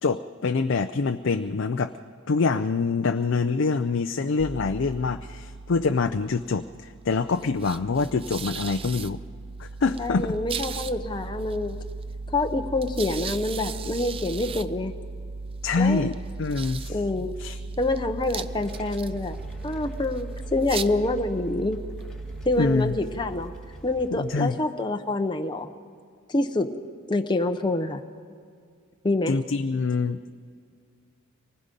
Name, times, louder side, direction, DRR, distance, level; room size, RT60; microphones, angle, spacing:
voice 1, 0.0-1.9 2.3-9.2 9.6-10.3 15.6-16.1 16.4-17.0 17.4-17.6 22.6-22.9 24.1-24.6 29.3-30.2, left 4 dB, 60° left, 8 dB, 0.5 m, -25 dB
sound 1, 4.4-24.3, right 4 dB, 25° right, 0.4 m, -37 dB
voice 2, 10.0-11.8 12.3-14.9 15.8-16.1 16.9-17.3 17.8-19.4 19.6-21.8 22.5-23.5 23.8-25.7 26.3-26.7 27.1-28.0 29.0-29.4, left 2 dB, 20° left, 6 dB, 0.7 m, -26 dB
sound 2, 18.5-24.4, equal, 5° left, 1.7 m, -49 dB
25.0 x 19.5 x 5.3 m, 2.2 s
head